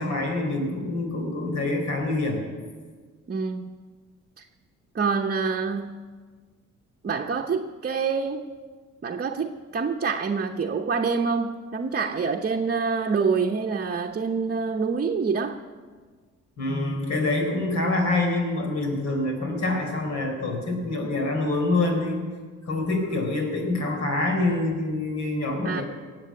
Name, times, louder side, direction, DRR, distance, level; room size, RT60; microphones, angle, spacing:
voice 1, 0.0-2.4 16.6-22.2 22.7-25.8, left 2 dB, 65° left, 2 dB, 4.2 m, -26 dB
voice 2, 3.3-3.7 4.4-4.5 4.9-6.0 7.0-8.5 9.0-15.6 25.6-25.8, right 5 dB, 35° right, 2 dB, 0.9 m, -26 dB
18.5 x 7.7 x 8.5 m, 1.5 s
cardioid pair, 90°, 30 cm